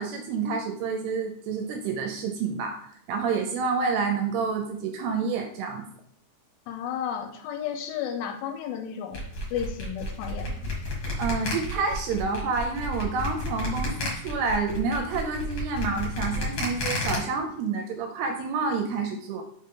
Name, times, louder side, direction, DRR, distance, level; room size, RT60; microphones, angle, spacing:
voice 1, 0.0-2.8 3.1-5.8 11.2-19.4, right 4 dB, 80° right, 4 dB, 2.4 m, -28 dB
voice 2, 6.7-10.7, left 8 dB, 80° left, 5 dB, 2.6 m, -33 dB
sound 1, 9.1-17.2, left 1 dB, 45° left, 2.0 m, -32 dB
5.6 x 5.2 x 3.7 m, 0.67 s
omnidirectional pair, 5.1 m